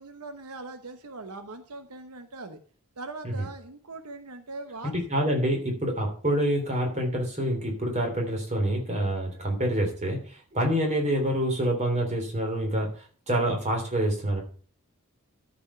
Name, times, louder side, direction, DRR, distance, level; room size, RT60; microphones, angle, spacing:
voice 1, 0.0-2.6 3.0-5.0, right 3 dB, 85° right, 8 dB, 1.1 m, -41 dB
voice 2, 4.8-14.4, right 1 dB, 30° right, 1 dB, 3.3 m, -27 dB
13.0 x 5.5 x 5.7 m, 0.43 s
head